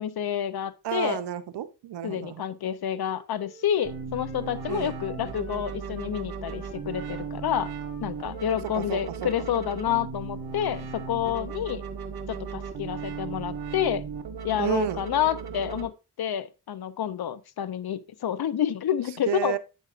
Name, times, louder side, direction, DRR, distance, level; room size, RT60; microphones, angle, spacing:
voice 1, 0.0-1.2 2.0-7.7 8.0-11.8 12.3-14.0 14.4-15.9 16.2-19.6, left 10 dB, 65° left, 0.6 m, -29 dB
voice 2, 0.8-2.4 4.7-4.9 8.7-9.3 14.5-15.0 19.3-19.6, right 11 dB, 80° right, 0.7 m, -31 dB
Wind instrument woodwind instrument, 3.0-6.1 6.4-9.9, equal, 35° left, 3.5 m, -53 dB
sound 1, 3.8-15.9, right 5 dB, 60° right, 1.1 m, -36 dB
8.0 x 6.5 x 2.4 m
cardioid pair, 55°, 41 cm